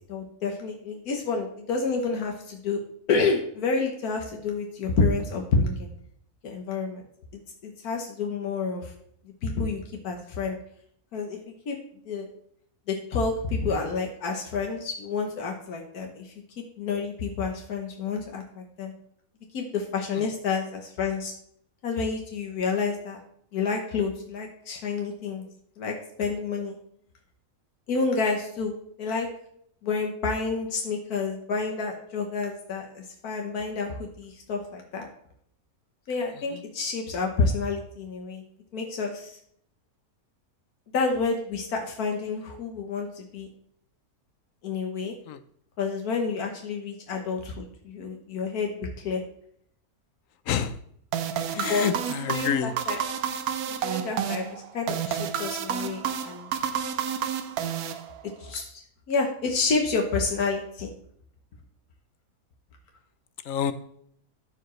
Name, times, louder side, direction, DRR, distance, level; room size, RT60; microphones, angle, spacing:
voice 1, 0.1-2.8 3.1-5.9 6.4-7.0 7.3-8.9 9.4-9.8 10.0-10.6 11.1-11.4 11.7-11.8 12.0-12.3 12.9-16.3 16.8-18.9 19.5-21.3 21.8-23.2 23.5-25.4 25.8-26.8 27.9-29.3 29.8-35.1 36.1-38.4 38.7-39.4 40.9-43.5 44.6-45.1 45.8-49.2 51.6-51.8 52.3-53.0 53.8-56.5 58.4-58.8 59.1-60.9, left 4 dB, 85° left, 2 dB, 1.6 m, -29 dB
voice 2, 50.5-50.8 51.5-52.8 63.4-63.7, left 8 dB, 70° left, 11 dB, 1.0 m, -28 dB
sound 1, 51.1-58.5, right 8 dB, 80° right, 1.2 m, -30 dB
13.5 x 4.7 x 3.1 m, 0.66 s
omnidirectional pair, 1.5 m